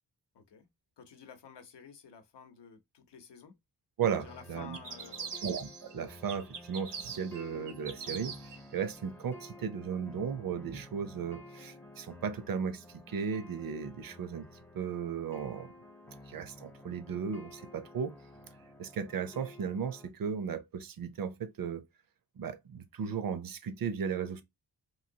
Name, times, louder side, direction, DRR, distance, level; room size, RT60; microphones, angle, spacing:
voice 1, 0.3-0.7 1.0-3.5 4.2-5.4, left 7 dB, 85° left, 0.7 m, -52 dB
voice 2, 4.0-4.8 5.4-14.4 14.7-15.7 16.3-18.1 18.8-21.8 22.4-24.4, right 7 dB, 55° right, 0.6 m, -36 dB
sound 1, 4.1-20.1, left 1 dB, 5° left, 0.4 m, -52 dB
sound 2, 4.7-5.9 6.3-8.6, right 6 dB, 80° right, 0.9 m, -42 dB
3.1 x 2.7 x 2.7 m
wide cardioid pair, 155°, 41 cm